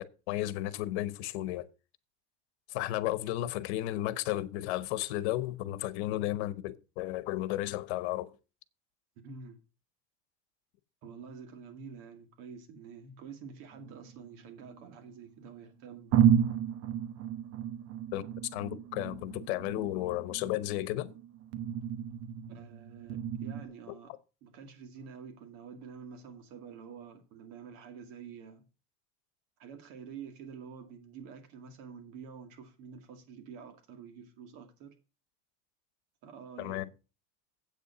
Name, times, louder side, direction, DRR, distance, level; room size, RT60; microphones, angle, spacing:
voice 1, 0.3-1.7 2.7-8.3 18.1-18.2 18.5-21.1 23.9-24.0 36.6-36.9, left 15 dB, 85° left, 1.0 m, -33 dB
voice 2, 9.2-9.6 11.0-16.2 22.5-24.1 24.4-28.6 29.6-34.9 36.2-36.9, right 6 dB, 65° right, 2.2 m, -48 dB
sound 1, 13.7-15.0 15.6-15.7 16.1-23.6, right 9 dB, 45° right, 0.9 m, -32 dB
8.2 x 6.9 x 6.0 m
cardioid pair, 150°, 32 cm